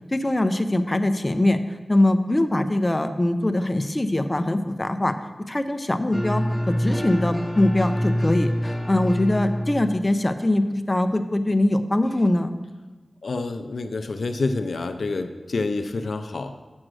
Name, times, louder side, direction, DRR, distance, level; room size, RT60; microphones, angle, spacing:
voice 1, 0.1-1.6 1.9-5.2 5.5-12.5, left 1 dB, 25° left, 8 dB, 0.6 m, -22 dB
sound 1, 6.1-10.1, equal, 5° right, 0.9 m, -26 dB
voice 2, 13.2-16.5, left 3 dB, 80° left, 8 dB, 0.4 m, -28 dB
7.6 x 6.3 x 6.2 m, 1.2 s
wide cardioid pair, 80°, 0 cm